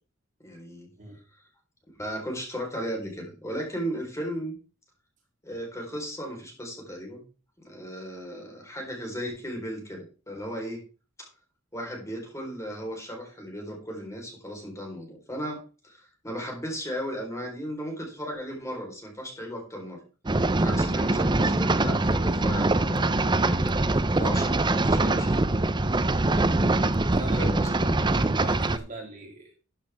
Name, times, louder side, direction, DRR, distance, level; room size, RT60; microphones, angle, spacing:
voice 1, 0.4-0.9 2.0-4.5 5.4-7.2 7.6-10.8 11.2-11.3 11.7-20.0 20.6-23.8 24.2-25.4 27.4-28.1, equal, 15° left, 0 dB, 4.3 m, -36 dB
sound 1, 20.3-28.8, right 2 dB, 25° right, 0.6 m, -23 dB
voice 2, 27.1-29.5, right 2 dB, 40° right, 0 dB, 3.7 m, -40 dB
13.5 x 8.1 x 3.6 m, 0.35 s
head